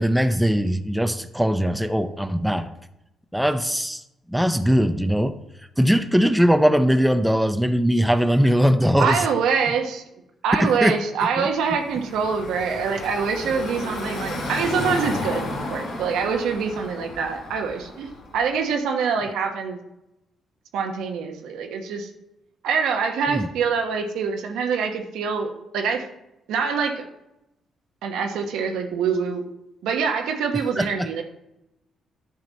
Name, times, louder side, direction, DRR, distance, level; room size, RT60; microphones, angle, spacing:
voice 1, 0.0-2.7 3.3-4.0 4.3-5.4 5.8-9.3 10.6-11.0 11.2-11.5 23.3-23.5 30.8-31.1, equal, 5° right, 9 dB, 0.5 m, -20 dB
voice 2, 9.0-10.0 10.4-15.4 15.7-19.8 20.7-22.1 22.6-26.1 26.5-27.0 28.0-29.4 29.8-31.2, right 6 dB, 85° right, 4 dB, 1.1 m, -25 dB
Car passing by / Traffic noise roadway noise, 11.6-18.5, left 2 dB, 80° left, 3.2 m, -33 dB
10.5 x 6.0 x 4.1 m, 0.87 s
cardioid pair, 90°, 0 cm